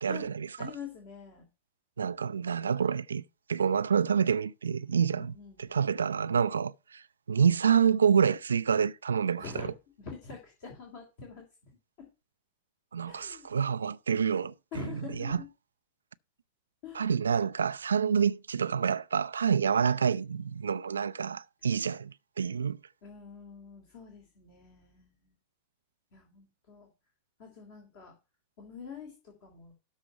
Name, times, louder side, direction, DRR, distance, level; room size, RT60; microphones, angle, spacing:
voice 1, 0.0-0.7 2.0-3.2 3.5-5.3 5.6-7.0 7.3-9.7 12.9-14.5 15.2-15.4 17.0-22.8, right 7 dB, 70° right, 0.4 m, -27 dB
voice 2, 0.6-1.5 5.1-5.8 9.4-9.7 10.0-12.1 13.1-13.6 14.7-15.5 16.8-17.1 23.0-25.3 26.1-26.9 27.4-28.1 28.6-29.7, left 6 dB, 50° left, 2.8 m, -45 dB
13.0 x 4.4 x 5.5 m
figure-of-eight pair, 90°, 0 cm